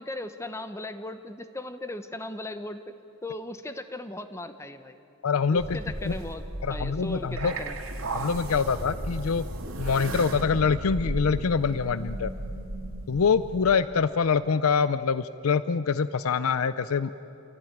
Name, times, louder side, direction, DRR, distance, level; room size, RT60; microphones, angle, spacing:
voice 1, 0.0-2.8 3.2-5.0 5.5-6.4 6.7-7.8, left 1 dB, 15° left, 9 dB, 1.0 m, -37 dB
voice 2, 5.2-5.8 6.0-6.2 6.6-7.5 8.1-9.4 9.8-12.3 13.1-17.1, left 5 dB, 85° left, 14 dB, 0.5 m, -25 dB
sound 1, 5.6-13.8, right 1 dB, 80° right, 2.1 m, -35 dB
28.0 x 16.5 x 9.1 m, 2.9 s
head